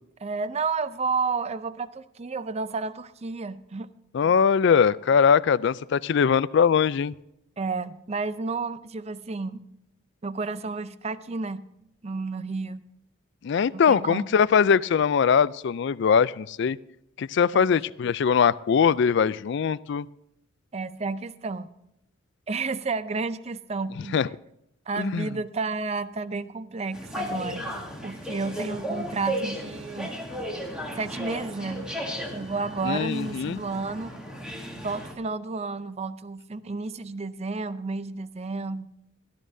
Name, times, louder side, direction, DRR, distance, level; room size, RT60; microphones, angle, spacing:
voice 1, 0.2-3.9 7.6-9.7 10.2-11.6 12.0-12.9 13.9-14.3 17.5-17.6 20.7-21.7 22.5-24.2 24.9-27.7 28.0-30.1 31.0-31.9 32.3-34.1 34.8-38.9, right 4 dB, 30° right, 14 dB, 0.5 m, -31 dB
voice 2, 4.1-7.2 13.4-16.8 17.2-20.1 24.1-24.3 25.0-25.3 32.8-33.6, left 6 dB, 55° left, 19 dB, 0.3 m, -21 dB
sound 1, 26.9-35.1, equal, 5° right, 1.9 m, -35 dB
17.5 x 13.0 x 2.7 m, 0.82 s
head